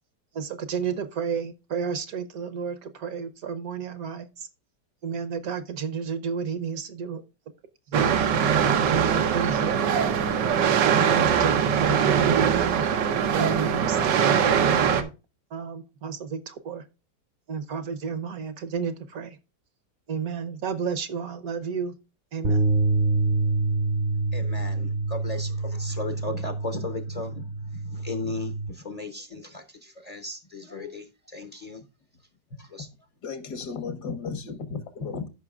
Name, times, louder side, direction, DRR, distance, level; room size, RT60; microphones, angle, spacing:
voice 1, 0.3-4.5 5.0-7.2 7.9-8.3 8.9-9.9 10.7-12.8 13.3-15.1 15.5-16.8 17.5-19.4 20.1-21.9 22.3-22.7, right 6 dB, 65° right, 1.2 m, -32 dB
sound 1, 7.9-15.0, right 7 dB, 90° right, 1.6 m, -22 dB
sound 2, 22.4-28.7, right 3 dB, 40° right, 0.7 m, -26 dB
voice 2, 24.3-31.8 32.6-32.9, left 3 dB, 40° left, 0.5 m, -36 dB
voice 3, 33.2-35.3, left 5 dB, 70° left, 1.7 m, -34 dB
14.0 x 5.7 x 2.4 m
omnidirectional pair, 1.8 m